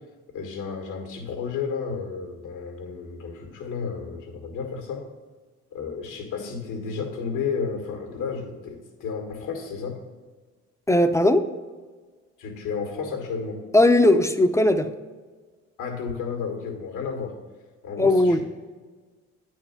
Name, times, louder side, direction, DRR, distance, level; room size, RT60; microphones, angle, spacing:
voice 1, 0.3-5.1 5.7-10.0 12.4-13.6 15.8-17.4 17.8-18.4, left 5 dB, 85° left, 2 dB, 1.7 m, -32 dB
voice 2, 10.9-11.5 13.7-14.9 18.0-18.4, left 1 dB, 10° left, 9 dB, 0.5 m, -18 dB
9.5 x 4.5 x 5.8 m, 1.4 s
cardioid pair, 90°, 30 cm